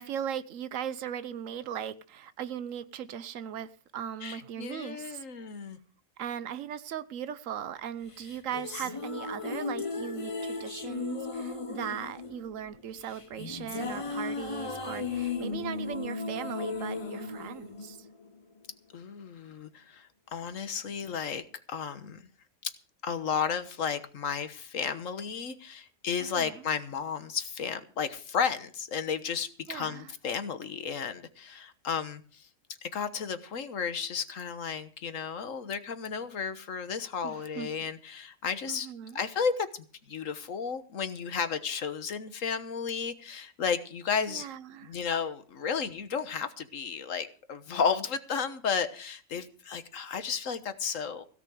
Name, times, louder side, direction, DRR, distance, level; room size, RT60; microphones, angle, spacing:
voice 1, 0.0-5.2 6.2-18.0 26.2-26.6 29.7-30.1 37.2-37.9 38.7-39.2 44.3-44.9, right 9 dB, 80° right, 1.2 m, -38 dB
voice 2, 4.2-5.8 18.9-22.2 23.0-32.5 32.8-38.9 39.1-44.5 44.8-51.2, left 6 dB, 85° left, 1.6 m, -33 dB
sound 1, 8.2-18.6, left 4 dB, 30° left, 1.0 m, -36 dB
17.0 x 5.8 x 9.3 m
omnidirectional pair, 1.3 m